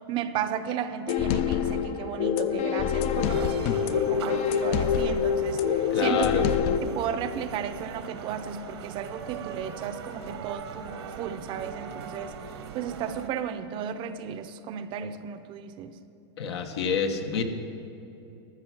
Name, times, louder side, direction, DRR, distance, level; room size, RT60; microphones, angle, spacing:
voice 1, 0.1-6.3 6.8-12.3 12.7-16.0, right 8 dB, 35° right, 11 dB, 0.6 m, -34 dB
sound 1, 1.1-6.8, left 8 dB, 45° left, 0.5 m, -25 dB
sound 2, 3.1-13.3, right 7 dB, 75° right, 1.0 m, -41 dB
voice 2, 5.9-6.5 16.4-17.4, left 6 dB, 75° left, 6 dB, 1.1 m, -28 dB
14.0 x 6.1 x 6.0 m, 2.9 s
hypercardioid pair, 125°, 14 cm